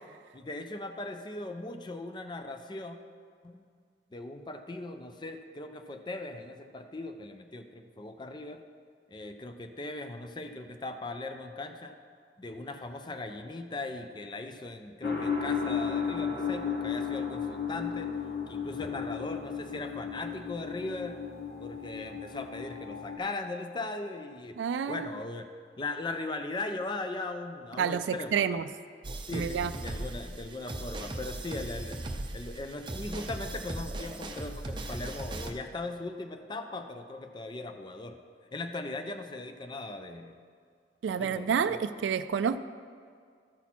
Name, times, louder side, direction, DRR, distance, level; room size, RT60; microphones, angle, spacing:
voice 1, 0.3-3.0 3.4-3.6 4.1-8.6 9.1-11.9 12.4-18.1 18.5-21.2 21.6-25.5 25.8-28.6 29.3-32.0 32.3-38.2 38.5-40.4 41.0-41.7, left 2 dB, 25° left, 6 dB, 0.5 m, -39 dB
sound 1, 15.0-23.2, left 6 dB, 60° left, 1.1 m, -34 dB
voice 2, 24.6-25.1 27.8-28.6 29.3-29.7 41.0-42.6, right 7 dB, 80° right, 12 dB, 0.3 m, -29 dB
sound 2, 29.0-35.5, right 1 dB, 25° right, 0.6 m, -38 dB
13.5 x 5.8 x 4.2 m, 2.1 s
head